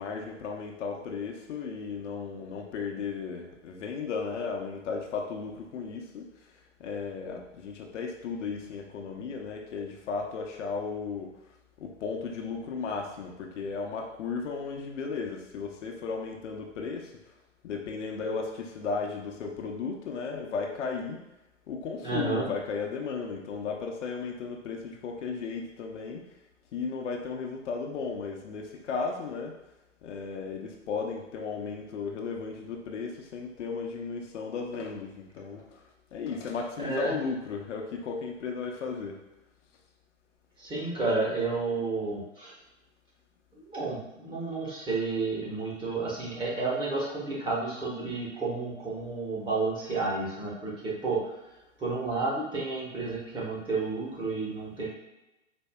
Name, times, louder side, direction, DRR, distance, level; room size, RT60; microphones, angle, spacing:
voice 1, 0.0-6.3 6.8-11.3 11.8-17.1 17.6-21.2 21.7-26.2 26.7-29.5 30.0-35.8 36.1-39.2, left 5 dB, 70° left, 2 dB, 0.7 m, -35 dB
voice 2, 22.0-22.4 36.8-37.1 40.6-42.5 43.6-51.2 51.8-54.9, right 3 dB, 15° right, -7 dB, 1.1 m, -31 dB
4.3 x 2.6 x 2.3 m, 0.96 s
hypercardioid pair, 115°, 38 cm